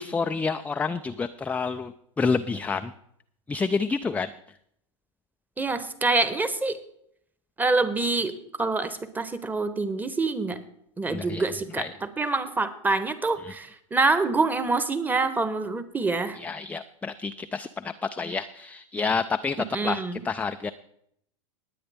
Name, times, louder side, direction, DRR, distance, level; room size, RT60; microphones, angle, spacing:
voice 1, 0.0-2.9 3.5-4.3 11.1-11.4 11.8-11.9 13.4-13.5 16.3-20.7, left 4 dB, 10° left, 8 dB, 0.4 m, -29 dB
voice 2, 5.6-6.8 7.6-10.6 11.0-11.9 12.2-16.4 19.7-20.2, right 3 dB, 10° right, 12 dB, 1.1 m, -26 dB
19.5 x 8.6 x 3.5 m, 0.71 s
hypercardioid pair, 95°, 16 cm